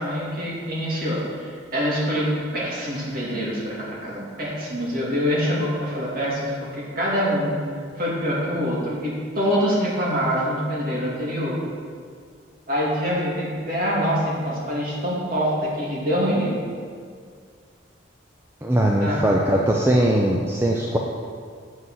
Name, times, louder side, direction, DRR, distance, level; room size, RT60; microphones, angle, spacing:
voice 1, 0.0-2.3 2.5-7.5 8.0-11.6 12.7-16.6 19.0-19.3 19.6-19.7, equal, 45° right, -6 dB, 2.6 m, -25 dB
voice 2, 18.6-21.0, right 1 dB, 10° right, -1 dB, 0.5 m, -20 dB
8.0 x 7.5 x 5.7 m, 2.1 s
head